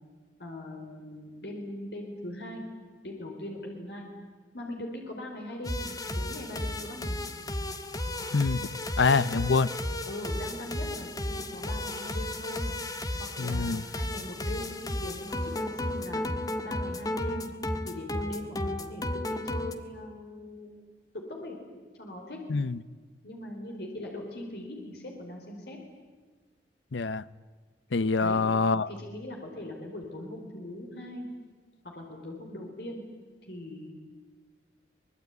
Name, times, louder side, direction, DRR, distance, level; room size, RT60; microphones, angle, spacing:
voice 1, 0.4-2.6 3.0-4.0 4.5-7.3 9.1-9.6 10.1-12.8 13.2-16.2 16.6-17.5 17.8-20.7 21.1-21.6 22.0-22.4 23.2-25.8 28.2-28.4 28.9-31.3 31.8-33.0 33.5-33.9, left 1 dB, 65° left, 4.6 m, -40 dB
sound 1, 5.6-19.7, left 1 dB, 20° left, 1.5 m, -34 dB
voice 2, 8.3-8.7 9.0-9.7 13.4-13.8 22.5-22.8 26.9-27.2 27.9-28.9, left 4 dB, 90° left, 0.7 m, -25 dB
24.5 x 21.5 x 9.6 m
head